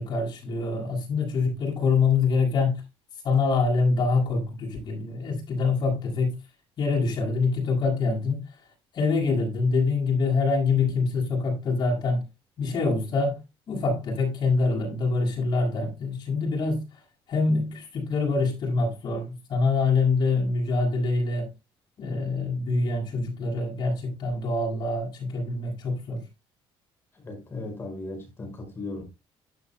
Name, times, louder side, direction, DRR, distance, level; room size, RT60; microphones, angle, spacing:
voice 1, 0.0-2.8 3.2-6.3 6.8-8.5 8.9-12.2 12.6-13.4 13.7-17.0 17.3-21.5 22.0-26.2, left 4 dB, 45° left, 6.6 m, -25 dB
voice 2, 27.1-29.0, left 2 dB, 25° left, 5.1 m, -37 dB
12.0 x 10.0 x 2.2 m
cardioid pair, 160°, 10 cm